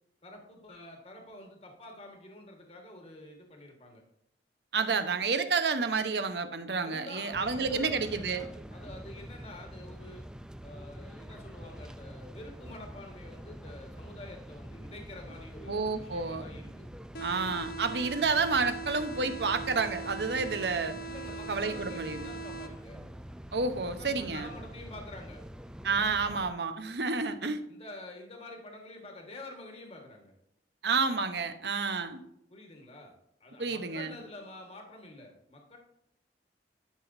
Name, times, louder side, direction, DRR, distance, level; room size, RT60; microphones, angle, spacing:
voice 1, 0.2-4.0 6.8-10.2 10.6-16.8 21.0-23.0 23.8-25.4 27.7-30.4 32.5-33.1 33.4-35.8, left 2 dB, 35° left, 2 dB, 1.5 m, -48 dB
voice 2, 4.7-8.4 15.7-16.5 17.2-21.0 21.5-22.3 23.5-24.5 25.8-27.6 30.8-32.2 33.6-34.2, right 4 dB, 75° right, 9 dB, 0.9 m, -30 dB
sound 1, 7.3-26.5, equal, 5° right, 0.3 m, -45 dB
sound 2, 17.1-23.1, right 3 dB, 55° left, 0.8 m, -41 dB
11.0 x 6.0 x 2.7 m, 0.77 s
head